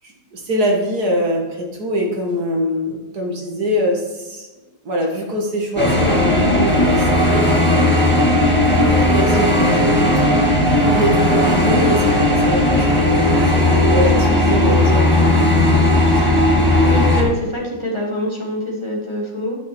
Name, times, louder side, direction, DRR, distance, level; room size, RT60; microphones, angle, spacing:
voice 1, 0.0-4.5 4.8-8.3 9.1-15.4 15.7-16.0 16.2-16.4, equal, 60° right, 0 dB, 2.2 m, -23 dB
sound 1, 5.8-17.2, left 1 dB, 5° left, 1.7 m, -15 dB
voice 2, 16.9-19.6, equal, 15° right, -4 dB, 1.9 m, -25 dB
10.5 x 5.7 x 4.5 m, 1.1 s
omnidirectional pair, 2.0 m